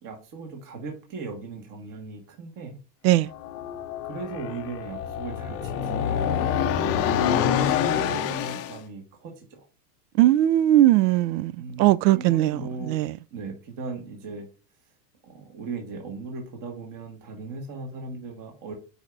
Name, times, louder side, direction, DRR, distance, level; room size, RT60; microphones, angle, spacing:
voice 1, 0.0-2.8 4.1-6.4 6.7-6.8 7.3-9.7 11.6-11.9 12.1-13.0 13.3-14.5 15.2-18.7, right 4 dB, 40° right, 1.7 m, -38 dB
sound 1, 3.3-8.8, left 8 dB, 30° left, 0.5 m, -26 dB
voice 2, 10.2-11.5 11.8-13.1, right 14 dB, 85° right, 0.5 m, -19 dB
8.7 x 4.9 x 2.6 m
supercardioid pair, 135°, 49 cm